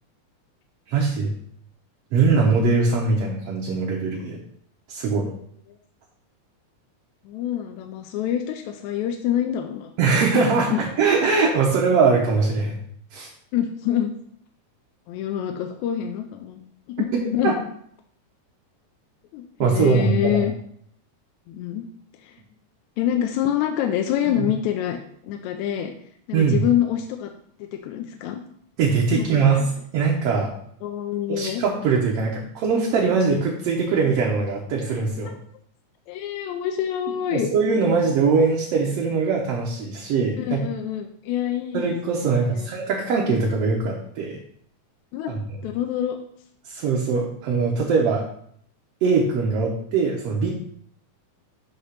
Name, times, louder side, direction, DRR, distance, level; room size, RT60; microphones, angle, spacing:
voice 1, 0.9-1.3 2.1-4.4 4.9-5.3 10.0-12.8 13.1-13.3 17.1-17.6 19.6-20.5 24.3-24.5 26.3-26.7 28.8-29.6 29.9-30.5 31.3-35.3 37.3-40.6 41.7-44.4 45.3-45.6 46.7-48.3 49.0-50.5, right 4 dB, 65° right, -2 dB, 1.7 m, -21 dB
voice 2, 7.3-9.9 10.5-10.8 13.5-14.1 15.1-16.6 16.9-17.6 19.3-20.5 21.5-21.9 22.2-22.4 23.0-25.9 26.3-27.3 27.6-28.4 29.1-29.7 30.8-31.6 35.2-35.3 36.1-37.5 40.4-42.7 45.1-46.2, left 10 dB, 80° left, 4 dB, 1.9 m, -26 dB
8.1 x 3.0 x 5.8 m, 0.65 s
omnidirectional pair, 3.5 m